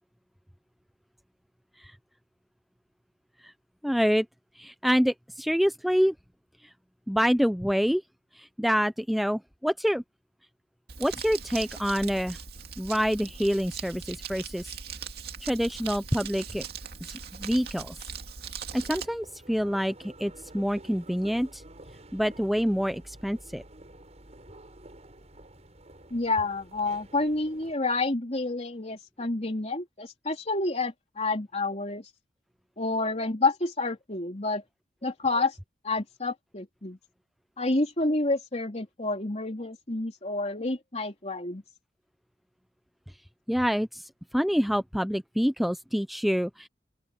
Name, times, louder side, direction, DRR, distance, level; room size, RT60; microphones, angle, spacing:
voice 1, 3.8-4.3 4.6-6.1 6.6-6.7 7.1-8.0 8.3-10.0 11.0-12.4 12.8-14.7 15.4-16.6 17.1-18.0 18.7-21.6 22.1-23.6 43.5-46.7, equal, ahead, 0.5 m, -27 dB
Crumpling crinkling, 10.9-19.0, right 6 dB, 65° right, 2.5 m, -40 dB
sound 1, 18.7-27.7, right 1 dB, 40° right, 7.9 m, -50 dB
voice 2, 26.1-32.1 32.8-34.6 35.0-35.5 35.8-37.0 37.6-41.6, left 2 dB, 40° left, 3.3 m, -29 dB
open air
head